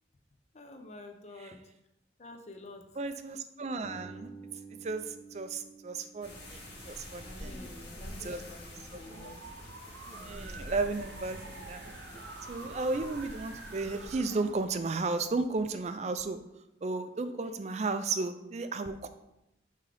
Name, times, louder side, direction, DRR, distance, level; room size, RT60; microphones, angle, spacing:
voice 1, 0.5-1.6 2.2-2.9 7.2-9.4, left 2 dB, 35° left, 4 dB, 0.6 m, -49 dB
voice 2, 3.0-4.3 4.8-7.6 8.2-8.4 8.9-9.3 10.2-11.9 12.5-16.4 16.8-19.1, right 3 dB, 35° right, 9 dB, 0.4 m, -34 dB
Bass guitar, 3.8-7.8, right 3 dB, 20° left, 1.1 m, -51 dB
sound 1, 6.2-14.1, left 1 dB, 65° left, 2.1 m, -46 dB
sound 2, 8.7-15.9, right 3 dB, 70° right, 0.6 m, -48 dB
9.3 x 3.7 x 3.4 m, 0.88 s
head